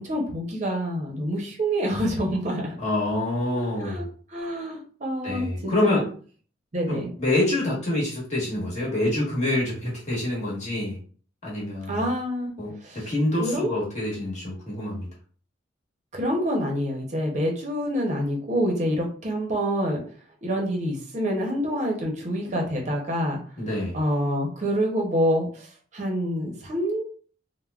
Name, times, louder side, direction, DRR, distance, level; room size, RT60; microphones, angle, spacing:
voice 1, 0.0-2.7 3.5-4.0 4.3-6.1 6.7-7.1 11.9-12.5 12.8-13.1 13.4-13.7 16.1-20.0 20.4-23.4 23.9-27.0, equal, 40° right, 0 dB, 0.6 m, -27 dB
voice 2, 2.8-4.1 5.2-6.0 6.9-11.0 11.4-12.1 12.6-15.1 23.6-24.0, left 1 dB, 40° left, -5 dB, 1.1 m, -26 dB
3.3 x 2.1 x 2.3 m, 0.43 s
head